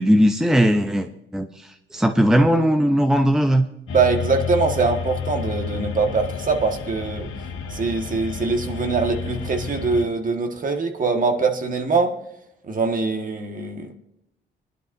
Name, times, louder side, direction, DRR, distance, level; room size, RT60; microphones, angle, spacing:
voice 1, 0.0-3.6, equal, 5° right, 6 dB, 0.7 m, -19 dB
sound 1, 3.9-10.0, left 6 dB, 75° left, 1.7 m, -31 dB
voice 2, 3.9-7.3 7.7-12.1 12.7-13.9, right 4 dB, 40° right, 4 dB, 1.6 m, -23 dB
21.5 x 11.5 x 2.7 m, 0.80 s
cardioid pair, 90°, 20 cm